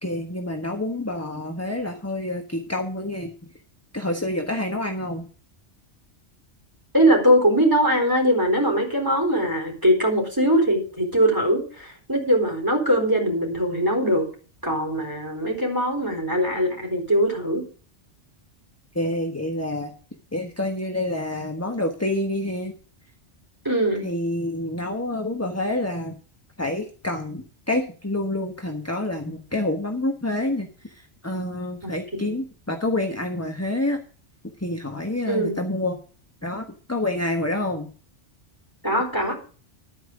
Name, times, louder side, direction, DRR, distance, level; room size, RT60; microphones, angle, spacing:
voice 1, 0.0-3.3 3.9-5.2 18.9-19.9 20.3-22.7 24.0-26.1 26.6-34.0 34.6-36.0 36.4-37.9, left 1 dB, 15° left, 4 dB, 1.3 m, -27 dB
voice 2, 6.9-14.3 14.6-17.6 23.6-24.1 31.8-31.9 32.2-32.4 35.3-35.6 38.8-39.4, equal, 15° right, 1 dB, 4.2 m, -21 dB
12.0 x 9.2 x 5.1 m, 0.39 s
omnidirectional pair, 1.2 m